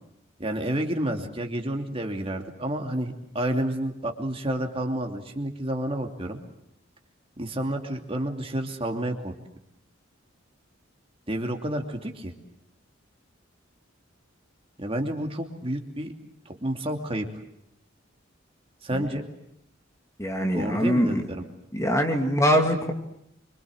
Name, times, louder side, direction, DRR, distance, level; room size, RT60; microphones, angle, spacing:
voice 1, 0.4-6.4 7.4-9.3 11.3-12.3 14.8-16.1 16.5-17.3 18.8-19.2 20.5-21.4, right 1 dB, 30° right, 4 dB, 2.8 m, -30 dB
voice 2, 20.2-21.3 21.7-22.9, equal, 15° left, 4 dB, 2.5 m, -23 dB
27.0 x 25.0 x 7.9 m, 0.76 s
head